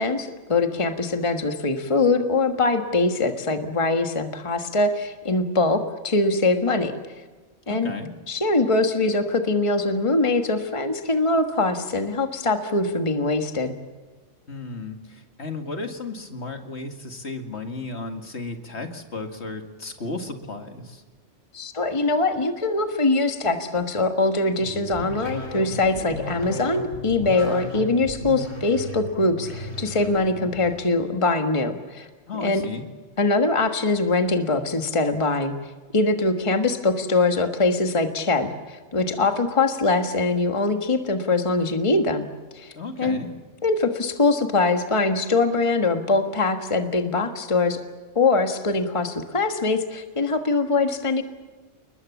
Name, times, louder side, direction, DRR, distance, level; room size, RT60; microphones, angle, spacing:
voice 1, 0.0-6.9 7.7-7.9 8.3-13.7 21.5-32.1 32.3-32.6 33.2-35.5 35.9-42.3 42.5-42.7 43.0-43.2 43.6-47.8 48.1-51.2, left 3 dB, 25° left, 6 dB, 1.5 m, -22 dB
voice 2, 7.7-8.1 14.5-21.0 32.3-32.8 42.7-43.3, left 3 dB, 60° left, 5 dB, 2.4 m, -34 dB
sound 1, 24.5-30.8, left 1 dB, 75° left, 4.5 m, -35 dB
29.0 x 21.0 x 7.2 m, 1.3 s
omnidirectional pair, 1.3 m